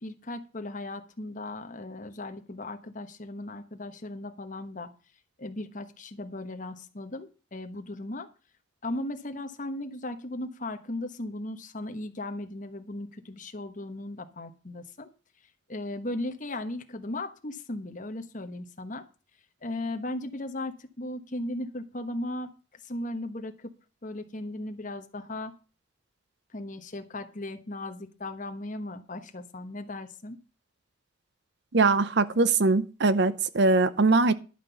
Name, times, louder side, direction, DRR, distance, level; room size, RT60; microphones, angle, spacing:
voice 1, 0.0-4.9 5.4-8.3 8.8-15.1 15.7-19.0 19.6-22.5 22.8-23.7 24.0-25.5 26.5-30.4, left 1 dB, 40° left, 1.1 m, -37 dB
voice 2, 31.7-34.3, right 3 dB, 55° right, 0.7 m, -22 dB
11.0 x 5.9 x 6.9 m
head